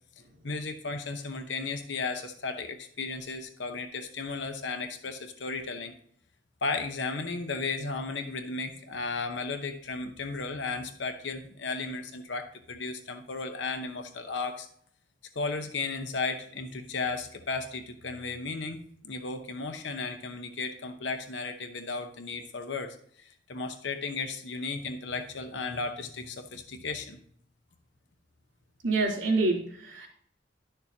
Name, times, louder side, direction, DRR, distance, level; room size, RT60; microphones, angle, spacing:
voice 1, 0.4-5.9 6.6-14.7 15.3-27.2, left 4 dB, 70° left, 7 dB, 0.9 m, -35 dB
voice 2, 28.8-30.1, right 3 dB, 80° right, -2 dB, 3.1 m, -27 dB
11.5 x 6.8 x 2.8 m, 0.62 s
head